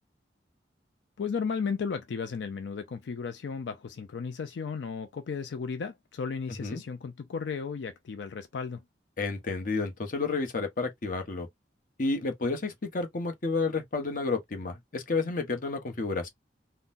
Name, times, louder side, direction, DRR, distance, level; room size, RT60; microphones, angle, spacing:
voice 1, 1.2-8.8, left 5 dB, 85° left, 0.4 m, -34 dB
voice 2, 9.2-11.5 12.0-16.3, left 3 dB, 50° left, 0.9 m, -31 dB
3.7 x 2.1 x 2.5 m
head